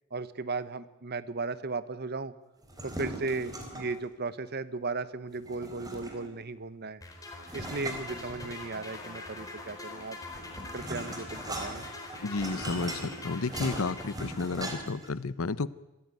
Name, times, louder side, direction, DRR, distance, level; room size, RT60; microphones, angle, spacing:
voice 1, 0.1-2.3 2.8-7.0 7.5-10.2 10.7-11.9, right 3 dB, 50° right, 14 dB, 1.1 m, -36 dB
sound 1, 2.6-4.0 5.4-6.4 7.5-8.8 10.0-15.1, right 1 dB, 20° right, 4.1 m, -39 dB
sound 2, 7.0-14.8, left 2 dB, 15° left, 4.5 m, -44 dB
voice 2, 12.2-15.7, left 3 dB, 80° left, 18 dB, 0.8 m, -32 dB
26.5 x 15.5 x 9.2 m, 1.0 s
head